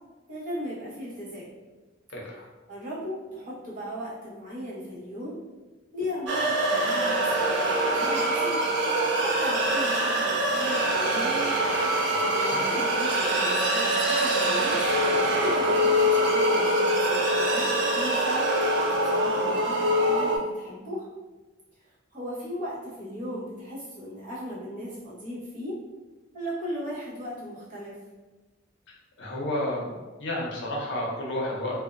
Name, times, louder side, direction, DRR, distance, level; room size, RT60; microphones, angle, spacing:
voice 1, 0.3-1.5 2.7-5.4 5.9-8.6 9.2-11.5 12.3-14.8 15.3-18.5 18.8-21.1 22.1-25.8 26.3-27.9, equal, 45° right, -10 dB, 1.1 m, -36 dB
voice 2, 2.1-2.4 12.1-12.6 29.2-29.9 30.2-31.7, left 1 dB, 65° left, -3 dB, 0.6 m, -31 dB
sound 1, 6.3-20.4, right 1 dB, 60° right, 0.4 m, -24 dB
2.5 x 2.1 x 2.5 m, 1.2 s
head